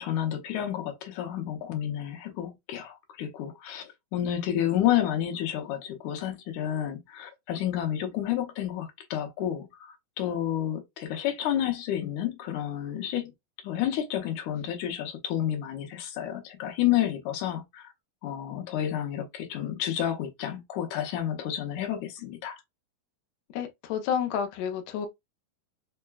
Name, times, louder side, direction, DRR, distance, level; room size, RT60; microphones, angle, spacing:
voice 1, 0.0-13.3 13.6-17.9 18.2-22.6, left 11 dB, 70° left, 1.9 m, -30 dB
voice 2, 23.5-25.1, left 8 dB, 90° left, 1.5 m, -30 dB
5.6 x 2.1 x 2.2 m
omnidirectional pair, 4.2 m